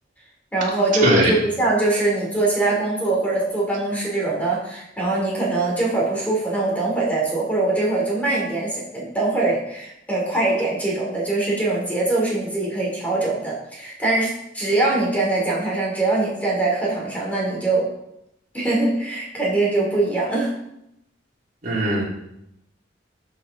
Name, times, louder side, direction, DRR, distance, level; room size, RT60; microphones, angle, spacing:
voice 1, 0.5-17.9 18.5-20.5, right 2 dB, 10° left, -4 dB, 2.8 m, -22 dB
voice 2, 1.0-1.3 21.6-22.0, right 1 dB, 45° right, -5 dB, 3.2 m, -19 dB
13.0 x 5.7 x 3.7 m, 0.80 s
head